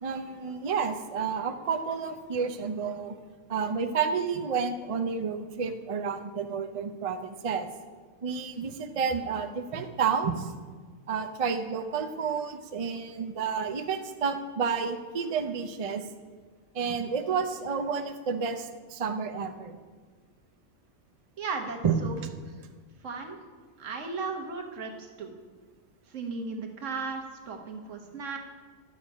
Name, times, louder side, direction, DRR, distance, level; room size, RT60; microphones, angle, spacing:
voice 1, 0.0-3.1 3.5-7.7 8.2-10.5 11.1-16.1 16.7-19.8 21.8-21.9, right 6 dB, 50° right, 5 dB, 0.4 m, -30 dB
voice 2, 21.4-22.2 22.4-22.5 23.0-23.4 23.8-25.3 26.1-28.4, right 4 dB, 65° right, 3 dB, 1.4 m, -36 dB
11.0 x 6.8 x 5.2 m, 1.5 s
omnidirectional pair, 1.4 m